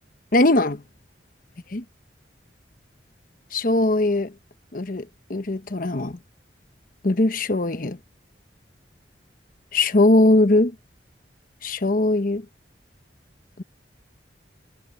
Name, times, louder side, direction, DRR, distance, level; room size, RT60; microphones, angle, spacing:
voice 1, 0.3-0.8 1.7-1.8 3.5-4.3 4.7-6.2 7.0-8.0 9.7-10.7 11.6-12.4, left 2 dB, 50° left, 1.0 m, -20 dB
head